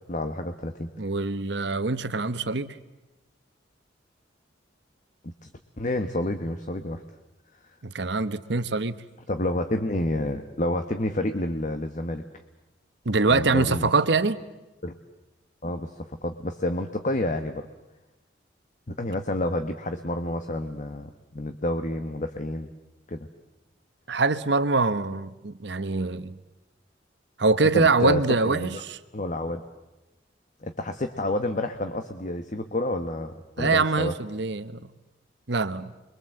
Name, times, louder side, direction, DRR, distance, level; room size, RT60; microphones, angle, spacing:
voice 1, 0.1-0.9 5.2-5.5 5.8-7.0 9.3-12.2 13.3-13.9 14.8-15.0 15.6-17.7 18.9-22.7 23.1-23.3 27.7-28.8 29.1-29.6 30.6-34.1, left 1 dB, 40° left, 1.2 m, -29 dB
voice 2, 1.0-2.8 7.8-9.0 13.0-14.4 24.1-26.4 27.4-29.0 33.6-34.8 35.5-35.9, right 3 dB, 65° right, 1.1 m, -24 dB
29.5 x 23.5 x 7.8 m
head